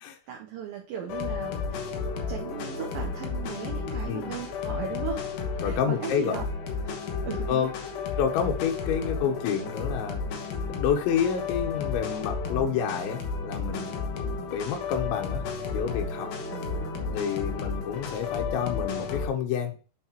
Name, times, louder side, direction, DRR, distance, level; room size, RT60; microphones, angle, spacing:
voice 1, 0.3-1.9 2.3-5.2 5.6-6.5 7.2-7.7 14.2-14.5 16.5-17.1, right 9 dB, 75° right, 2 dB, 2.1 m, -37 dB
sound 1, 1.1-19.3, left 5 dB, 65° left, 2.2 m, -32 dB
voice 2, 5.6-6.4 7.5-7.7 8.2-10.2 10.7-13.9 14.5-15.4 15.7-16.3 17.1-19.7, left 8 dB, 90° left, 3 dB, 3.2 m, -29 dB
9.5 x 4.9 x 2.9 m, 0.36 s
omnidirectional pair, 5.1 m